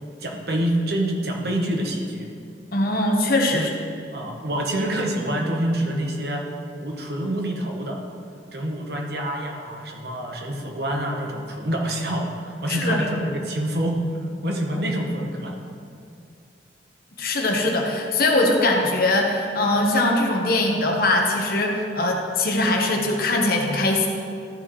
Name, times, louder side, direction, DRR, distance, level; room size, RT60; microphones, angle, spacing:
voice 1, 0.2-2.3 3.5-3.7 4.1-6.5 6.8-8.0 8.5-14.0 14.4-15.6, right 1 dB, 60° right, 1 dB, 1.1 m, -26 dB
voice 2, 2.7-3.7 12.7-13.0 17.2-24.1, left 2 dB, 55° left, 1 dB, 1.0 m, -21 dB
13.0 x 6.2 x 3.1 m, 2.4 s
head